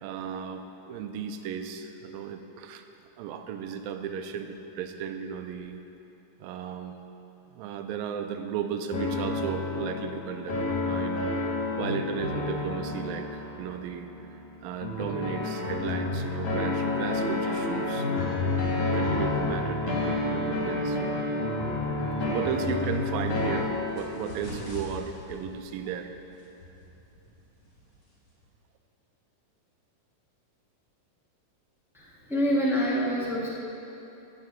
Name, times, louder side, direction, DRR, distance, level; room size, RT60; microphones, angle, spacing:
voice 1, 0.0-2.9 3.2-5.8 6.4-7.0 7.5-11.3 11.8-18.4 18.9-21.0 22.3-23.7 24.0-26.1, right 7 dB, 85° right, 7 dB, 2.4 m, -35 dB
sound 1, 8.9-23.6, left 2 dB, 75° left, 3.8 m, -29 dB
sound 2, 22.3-28.5, left 1 dB, 45° left, 4.4 m, -46 dB
voice 2, 31.9-33.5, equal, ahead, -7 dB, 0.7 m, -26 dB
16.0 x 5.7 x 7.5 m, 3.0 s
omnidirectional pair, 4.1 m